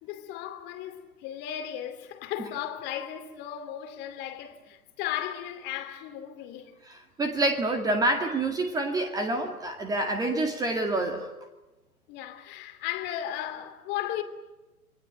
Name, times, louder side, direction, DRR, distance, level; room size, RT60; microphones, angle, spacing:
voice 1, 0.0-6.8 12.1-14.2, left 11 dB, 25° left, 2.6 m, -35 dB
voice 2, 6.9-11.3, right 2 dB, 10° right, 2.0 m, -27 dB
27.5 x 22.0 x 9.1 m
figure-of-eight pair, 130°, 45 cm